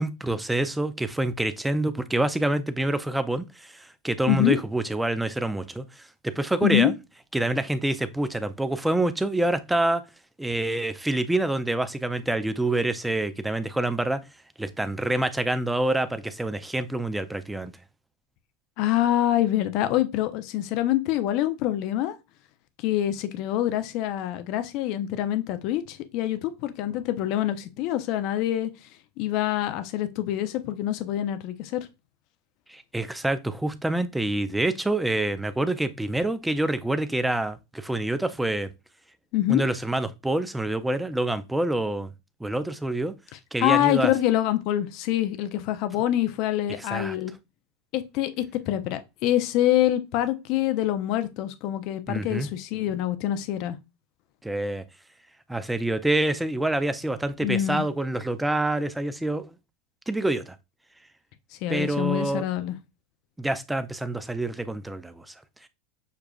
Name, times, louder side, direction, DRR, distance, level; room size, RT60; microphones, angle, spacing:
voice 1, 0.0-6.9 7.3-10.0 10.4-14.2 14.6-17.7 32.7-38.7 39.5-42.1 42.4-43.1 43.5-44.1 46.9-47.2 52.1-52.5 54.4-54.8 55.5-59.6 60.1-60.6 61.7-62.5 63.4-65.3 65.6-65.7, right 1 dB, 5° right, 0.4 m, -27 dB
voice 2, 6.6-6.9 18.8-22.2 22.8-28.7 29.2-31.9 39.3-39.6 43.6-47.3 47.9-53.8 57.4-57.8 61.6-62.7, left 13 dB, 55° left, 0.5 m, -25 dB
6.5 x 2.3 x 2.3 m
hypercardioid pair, 105°, 0 cm